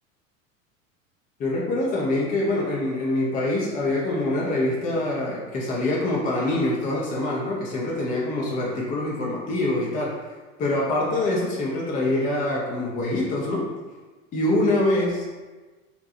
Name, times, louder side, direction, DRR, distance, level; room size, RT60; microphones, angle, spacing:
voice 1, 1.4-10.1 10.6-13.7 14.3-15.4, left 2 dB, 20° left, -3 dB, 0.5 m, -25 dB
2.7 x 2.2 x 4.1 m, 1.3 s
figure-of-eight pair, 85°, 41 cm